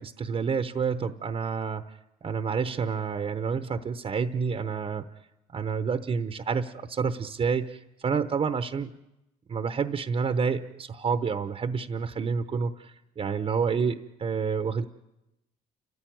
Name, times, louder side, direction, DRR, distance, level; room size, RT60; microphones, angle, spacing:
voice 1, 0.0-1.8 2.2-5.0 5.5-8.9 9.5-14.8, right 5 dB, 35° right, 9 dB, 0.9 m, -29 dB
29.5 x 14.5 x 9.3 m, 0.97 s
cardioid pair, 110°, 17 cm